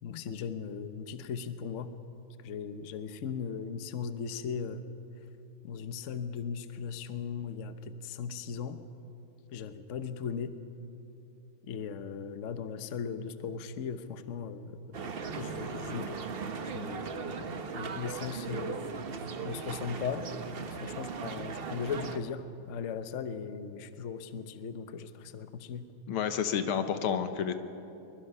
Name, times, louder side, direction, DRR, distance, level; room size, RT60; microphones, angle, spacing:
voice 1, 0.0-1.9 2.4-4.9 5.6-8.8 9.5-10.5 11.6-15.0 15.3-16.2 16.6-18.8 19.4-20.3 20.7-25.9, left 6 dB, 50° left, 10 dB, 0.9 m, -38 dB
sound 1, 14.9-22.2, right 5 dB, 70° right, 0.5 m, -38 dB
voice 2, 26.1-27.5, left 8 dB, 85° left, 9 dB, 1.9 m, -30 dB
23.5 x 21.5 x 5.6 m, 2.8 s
omnidirectional pair, 2.3 m